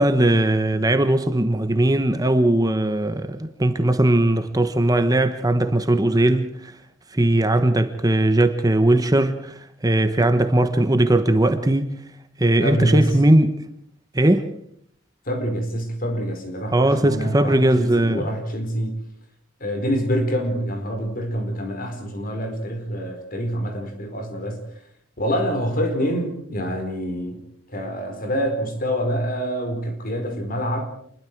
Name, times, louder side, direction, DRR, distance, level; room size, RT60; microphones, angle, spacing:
voice 1, 0.0-6.7 7.1-11.9 12.4-13.6 14.1-14.5 16.7-18.3, right 1 dB, 20° right, 1.1 m, -19 dB
voice 2, 12.6-13.2 15.2-19.0 19.6-24.6 25.2-27.4 27.7-30.8, equal, 45° left, 4.7 m, -26 dB
28.5 x 21.5 x 4.7 m
head